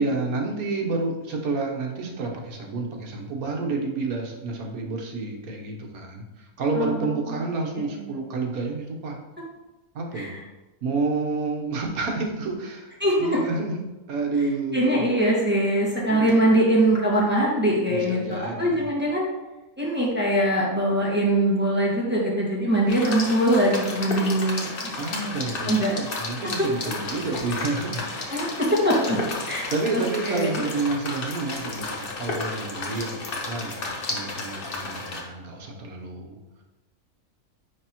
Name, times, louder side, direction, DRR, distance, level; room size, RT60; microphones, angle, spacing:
voice 1, 0.0-9.2 9.9-10.4 10.8-13.8 14.1-15.1 16.1-16.4 17.9-18.9 25.0-28.6 29.7-36.4, right 3 dB, 75° right, 1 dB, 1.4 m, -29 dB
voice 2, 6.7-7.2 7.8-8.1 10.1-10.3 13.0-13.1 14.7-19.3 19.8-24.9 25.7-26.0 28.3-29.2 29.5-30.5, right 1 dB, 5° right, -6 dB, 1.4 m, -22 dB
sound 1, 22.9-35.2, left 3 dB, 45° left, 0.9 m, -32 dB
9.6 x 3.4 x 2.9 m, 1.1 s
omnidirectional pair, 1.6 m